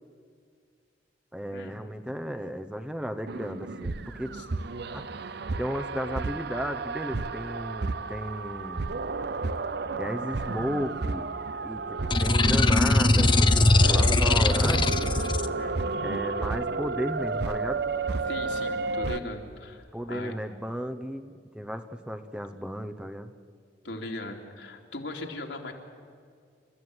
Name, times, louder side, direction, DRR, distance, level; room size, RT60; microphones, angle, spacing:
voice 1, 1.3-4.3 4.9-8.9 10.0-11.3 11.6-15.0 16.0-17.8 19.9-23.3, equal, 5° right, 8 dB, 0.9 m, -34 dB
sound 1, 3.3-19.2, right 3 dB, 65° right, 0.8 m, -32 dB
sound 2, 12.1-15.5, left 2 dB, 25° left, 0.7 m, -21 dB
voice 2, 18.3-20.3 23.8-25.7, left 2 dB, 75° left, 2 dB, 2.9 m, -39 dB
29.0 x 14.0 x 9.7 m, 2.2 s
head